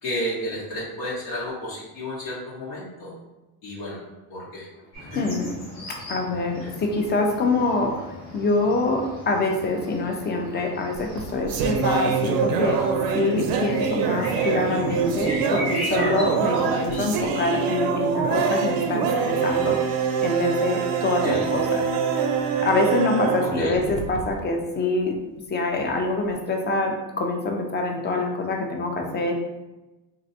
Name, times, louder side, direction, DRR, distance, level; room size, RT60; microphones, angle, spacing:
voice 1, 0.0-3.1 3.6-4.0 4.3-4.7 5.0-5.2 6.6-6.7 21.2-21.5 23.4-23.8, left 1 dB, 65° left, -7 dB, 1.1 m, -31 dB
sound 1, 4.9-17.1, equal, 85° left, 1.3 m, -38 dB
voice 2, 5.1-5.6 5.9-12.8 13.1-22.3 22.6-25.2 25.5-29.3, left 2 dB, 20° left, 2 dB, 0.5 m, -25 dB
sound 2, 10.9-24.4, right 6 dB, 50° right, 0.5 m, -24 dB
3.0 x 2.6 x 2.6 m, 1.1 s
supercardioid pair, 80°, 48 cm